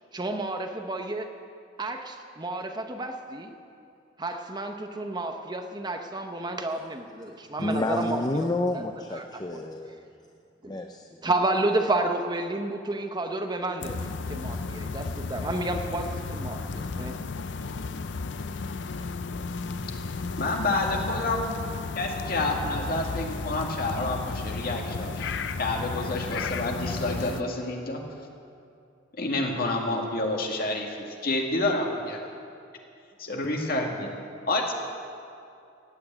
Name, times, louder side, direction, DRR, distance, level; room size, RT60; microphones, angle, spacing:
voice 1, 0.1-1.3 1.8-3.5 4.2-8.5 8.7-8.8 9.1-9.6 10.6-10.8 11.2-17.1, right 2 dB, 25° right, 5 dB, 0.9 m, -31 dB
voice 2, 7.6-10.0 10.6-11.2, left 2 dB, 20° left, 4 dB, 0.6 m, -29 dB
sound 1, 13.8-27.4, left 4 dB, 75° left, 0.6 m, -33 dB
voice 3, 20.4-21.5 22.0-28.0 29.2-31.0 31.2-32.3 33.2-34.1 34.5-34.7, left 2 dB, 55° left, 1 dB, 2.0 m, -28 dB
15.5 x 8.6 x 8.9 m, 2.6 s
head